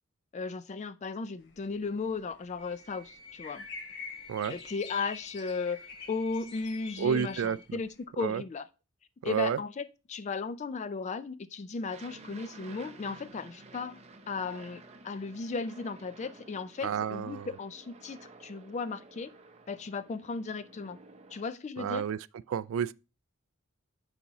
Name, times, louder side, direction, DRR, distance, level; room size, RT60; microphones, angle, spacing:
voice 1, 0.3-3.7 4.5-8.7 9.2-14.0 14.3-19.3 19.7-21.0 21.3-22.1, left 4 dB, 35° left, 0.3 m, -36 dB
sound 1, 1.4-8.0, left 5 dB, 55° left, 1.0 m, -48 dB
sound 2, 2.6-7.6, left 4 dB, 5° left, 3.2 m, -51 dB
voice 2, 7.0-7.8 8.2-8.4 9.2-9.6 16.8-17.5 21.8-22.2 22.5-22.9, right 8 dB, 70° right, 0.3 m, -30 dB
Aircraft, 11.9-21.4, right 3 dB, 30° right, 0.6 m, -52 dB
7.0 x 4.1 x 4.1 m
head